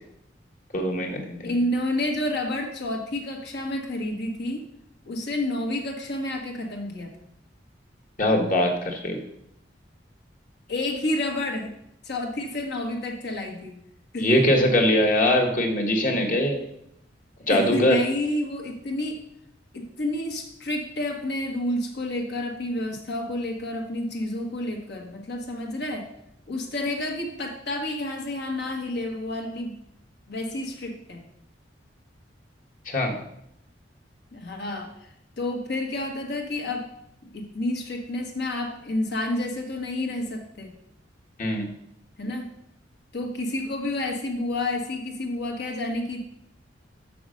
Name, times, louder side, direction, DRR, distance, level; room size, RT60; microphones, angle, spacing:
voice 1, 0.7-1.5 8.2-9.2 14.2-16.6 17.5-18.0 32.9-33.2 41.4-41.6, left 1 dB, 45° left, 1 dB, 1.5 m, -22 dB
voice 2, 1.4-4.6 5.0-7.1 10.7-11.7 12.0-13.8 14.1-14.3 17.4-19.2 19.7-26.1 26.5-29.7 30.3-31.2 34.3-35.1 35.4-36.9 37.3-40.7 42.2-42.5 43.1-46.2, left 1 dB, 65° left, 1 dB, 1.5 m, -29 dB
6.6 x 6.0 x 6.3 m, 0.76 s
head